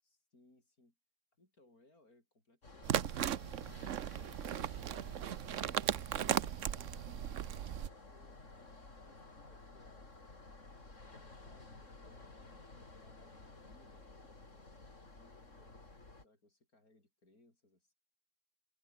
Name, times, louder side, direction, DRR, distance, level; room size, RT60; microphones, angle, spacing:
voice 1, 0.0-1.0 1.4-3.9 5.0-10.2 10.9-12.4 13.0-15.9 16.2-17.9, left 2 dB, 90° left, 7.1 m, -68 dB
sound 1, 2.6-16.3, left 3 dB, 55° left, 4.3 m, -54 dB
sound 2, 2.8-7.9, right 10 dB, 60° right, 1.1 m, -37 dB
omnidirectional pair, 1.5 m